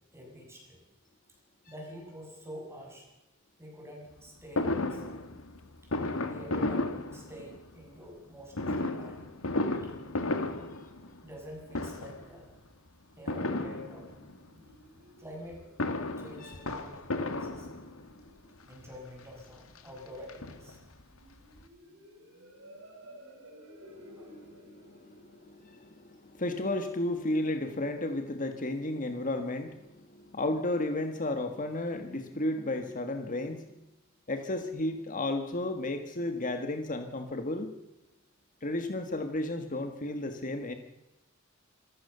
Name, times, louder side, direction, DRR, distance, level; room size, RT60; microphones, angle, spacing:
voice 1, 0.1-0.8 1.7-3.1 3.6-5.2 6.2-9.3 9.8-9.9 10.4-10.9 11.2-12.5 13.2-14.1 15.2-15.6 16.2-17.7 18.7-20.8 24.2-24.3, equal, 15° right, 0 dB, 7.4 m, -47 dB
Fireworks, 4.6-7.8 8.5-11.5 11.7-12.3 13.3-14.4 15.5-18.2 18.9-19.0 19.3-19.4 19.8-21.0 21.3-21.4 21.6-21.7, left 2 dB, 80° left, 2.1 m, -34 dB
sound 1, 13.6-27.2, equal, 70° right, 5.6 m, -56 dB
voice 2, 23.9-33.8 34.3-37.7 38.6-40.7, left 1 dB, 40° left, 6 dB, 1.6 m, -33 dB
26.5 x 15.0 x 6.8 m, 0.96 s
head